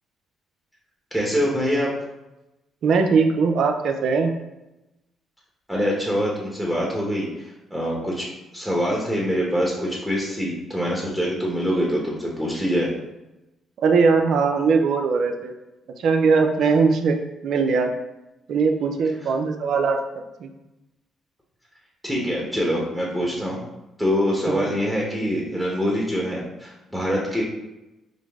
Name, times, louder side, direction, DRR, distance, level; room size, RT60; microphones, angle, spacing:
voice 1, 1.1-1.9 5.7-8.3 8.5-12.9 22.0-23.6 24.0-27.4, equal, 5° right, -3 dB, 1.0 m, -24 dB
voice 2, 2.8-4.3 13.8-15.5 16.0-17.2 17.4-17.9 18.5-20.0 20.4-20.5 24.5-24.7, right 5 dB, 70° right, 5 dB, 0.5 m, -20 dB
5.1 x 2.0 x 3.6 m, 0.97 s
supercardioid pair, 70°, 0 cm